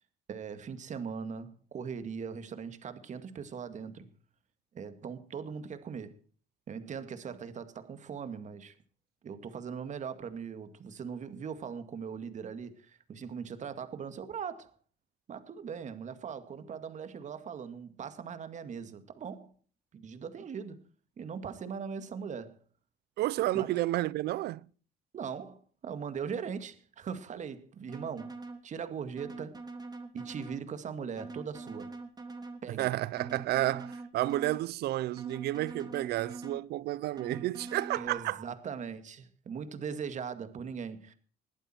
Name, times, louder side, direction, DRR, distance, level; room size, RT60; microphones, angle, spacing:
voice 1, 0.3-4.1 4.7-6.2 6.7-8.8 9.2-14.7 15.3-19.5 19.9-20.8 21.2-22.6 23.5-23.7 25.1-28.4 28.6-29.6 30.1-32.0 32.6-32.9 38.0-41.1, right 6 dB, 45° right, 2.2 m, -40 dB
voice 2, 23.2-24.7 32.7-38.4, right 15 dB, 75° right, 0.7 m, -31 dB
sound 1, 27.9-28.6 29.2-30.6 31.2-32.6 33.2-34.6 35.2-36.6 37.2-38.1, right 3 dB, 25° right, 3.0 m, -44 dB
21.0 x 14.5 x 4.5 m
cardioid pair, 110°, 17 cm